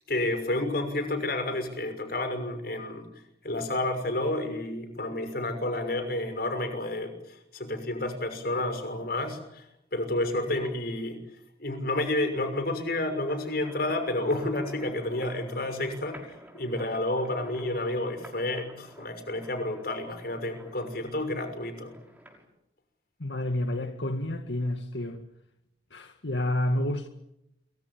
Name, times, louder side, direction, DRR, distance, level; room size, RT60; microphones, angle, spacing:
voice 1, 0.1-3.0 3.4-9.6 9.9-11.2 11.6-16.2 16.5-21.9, left 1 dB, 55° left, 6.2 m, -30 dB
sound 1, 13.3-22.5, equal, 10° right, 6.2 m, -50 dB
voice 2, 23.2-25.2 25.9-27.1, left 1 dB, 85° left, 2.0 m, -29 dB
28.0 x 24.5 x 7.4 m
head